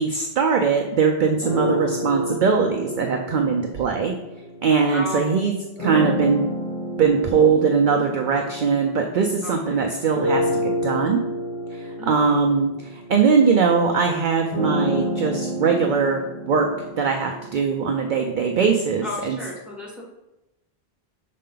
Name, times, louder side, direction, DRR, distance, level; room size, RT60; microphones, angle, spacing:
voice 1, 0.0-4.1 4.6-5.5 5.8-6.5 7.0-11.2 11.7-16.7 17.0-19.4, right 5 dB, 55° right, 2 dB, 0.7 m, -21 dB
sound 1, 1.4-5.0 5.8-9.6 10.1-18.1, equal, 30° left, 1.0 m, -29 dB
voice 2, 4.9-5.3 9.4-9.9 12.0-12.4 19.0-20.0, left 1 dB, ahead, -5 dB, 2.1 m, -34 dB
6.6 x 4.2 x 3.8 m, 0.96 s
omnidirectional pair, 1.0 m